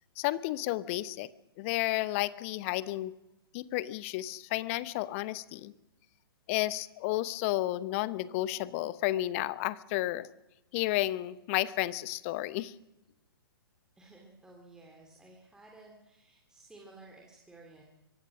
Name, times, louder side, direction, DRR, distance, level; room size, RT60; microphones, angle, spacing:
voice 1, 0.2-1.3 1.6-3.1 3.5-5.7 6.5-10.3 10.7-12.7, left 16 dB, 35° left, 17 dB, 0.9 m, -32 dB
voice 2, 14.0-17.8, right 2 dB, 5° right, -1 dB, 3.0 m, -54 dB
24.0 x 18.0 x 6.2 m, 0.94 s
figure-of-eight pair, 120°, 13 cm